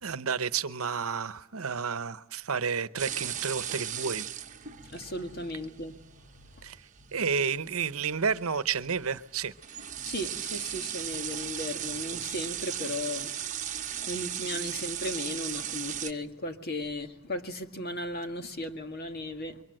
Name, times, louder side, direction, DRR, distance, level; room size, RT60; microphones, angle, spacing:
voice 1, 0.0-4.3 6.6-6.8 7.1-9.5, right 6 dB, 85° right, 0.9 m, -31 dB
sound 1, 3.0-16.1, right 10 dB, 35° right, 1.1 m, -37 dB
voice 2, 4.8-6.0 10.0-13.3 14.1-19.6, left 1 dB, 45° left, 1.9 m, -36 dB
26.5 x 23.5 x 7.7 m
head